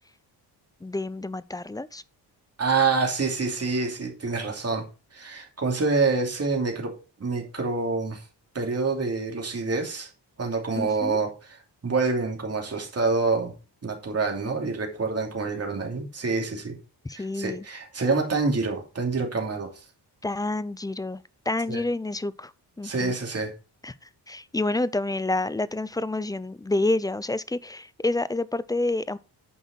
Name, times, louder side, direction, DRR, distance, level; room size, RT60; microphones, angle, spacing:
voice 1, 0.8-2.0 10.7-11.2 17.0-17.7 20.2-22.5 22.8-23.1 23.8-29.2, left 2 dB, 10° left, 0.4 m, -28 dB
voice 2, 2.6-4.9 5.1-8.2 8.5-10.1 10.4-11.6 11.8-13.5 13.8-16.8 17.1-19.8 21.7-21.8 22.8-23.5, right 4 dB, 35° right, 2.9 m, -27 dB
9.4 x 5.5 x 4.4 m
cardioid pair, 100°, 41 cm